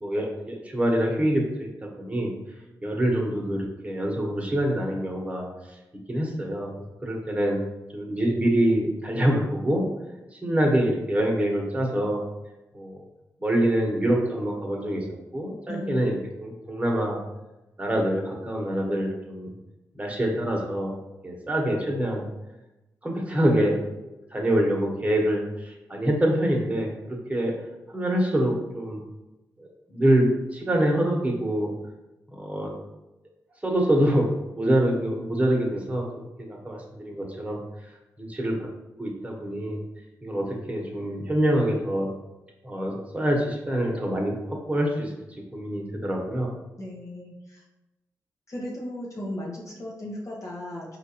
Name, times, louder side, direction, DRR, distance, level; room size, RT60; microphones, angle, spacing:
voice 1, 0.0-1.7 2.0-2.3 2.8-5.5 6.1-6.7 7.0-7.6 7.9-9.8 10.3-12.2 12.7-13.0 13.4-15.0 15.3-17.2 17.8-19.5 19.9-20.9 21.2-22.3 23.0-23.8 24.1-27.5 27.9-29.0 29.6-31.7 32.3-32.7 33.6-37.6 38.2-38.6 39.0-39.8 40.2-42.1 42.6-45.1 45.5-46.5, right 1 dB, 20° right, 0 dB, 1.1 m, -25 dB
voice 2, 15.7-16.1 46.8-47.6 48.5-51.0, left 1 dB, 45° left, -4 dB, 0.9 m, -36 dB
4.4 x 2.5 x 2.9 m, 1.0 s
supercardioid pair, 40°, 8 cm